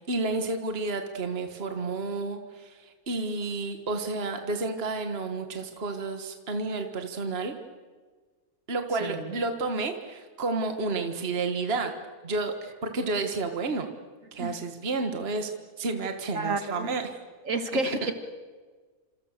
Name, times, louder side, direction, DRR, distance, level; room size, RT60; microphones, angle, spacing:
voice 1, 0.0-7.5 8.7-11.9 12.2-12.5 12.8-13.9 14.3-15.5 15.8-17.1 18.0-18.1, right 3 dB, 40° right, 6 dB, 1.9 m, -31 dB
voice 2, 9.0-9.3 14.4-14.5 16.3-16.9 17.4-18.1, right 2 dB, 60° right, 7 dB, 2.3 m, -30 dB
29.5 x 27.0 x 6.8 m, 1.4 s
omnidirectional pair, 1.6 m